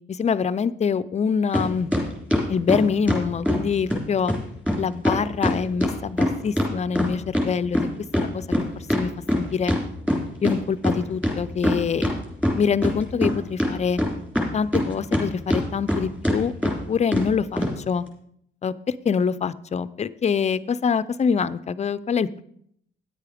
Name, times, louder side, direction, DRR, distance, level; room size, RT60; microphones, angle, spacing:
voice 1, 0.1-1.9 2.5-4.3 4.8-7.9 8.2-9.1 9.4-9.7 10.4-12.1 12.6-14.0 14.5-16.5 16.9-18.0 18.6-22.4, left 6 dB, 35° left, 17 dB, 0.5 m, -25 dB
sound 1, 1.5-1.7 1.9-3.6 3.9-4.0 4.3-4.4 4.7-4.8 5.0-7.5 7.7-10.5 10.8-10.9 11.2-12.1 12.4-13.3 13.6-15.2 15.5-16.0 16.2-16.4 16.6-16.7 17.1-17.3 17.6-17.7, left 1 dB, 5° right, 3.4 m, -22 dB
9.9 x 8.3 x 5.0 m, 0.69 s
cardioid pair, 90°, 20 cm